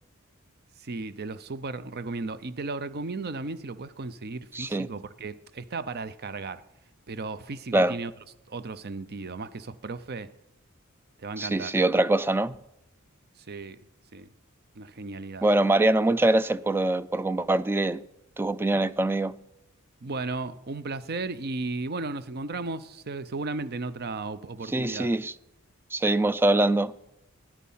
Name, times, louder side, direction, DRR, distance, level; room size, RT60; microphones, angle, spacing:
voice 1, 0.8-6.6 7.1-8.1 8.5-10.3 11.2-11.7 13.5-13.8 14.1-14.3 14.8-15.4 20.0-25.1, right 3 dB, 50° right, 0.6 m, -35 dB
voice 2, 4.5-4.9 7.7-7.9 11.4-12.6 15.4-18.0 18.4-19.3 24.7-25.3 25.9-26.9, right 2 dB, 10° right, 0.3 m, -23 dB
12.5 x 10.5 x 5.6 m
head